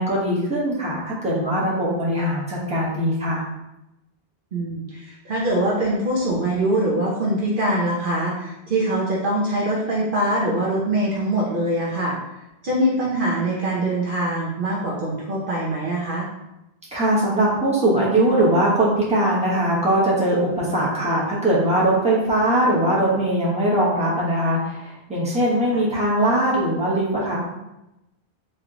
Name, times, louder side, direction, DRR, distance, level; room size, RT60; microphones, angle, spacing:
voice 1, 0.0-3.4 16.9-27.4, right 1 dB, 5° right, -7 dB, 1.1 m, -21 dB
voice 2, 4.5-12.2 12.6-16.3 25.7-25.8, right 1 dB, 60° right, -4 dB, 0.9 m, -23 dB
3.3 x 3.0 x 3.8 m, 0.92 s
omnidirectional pair, 1.1 m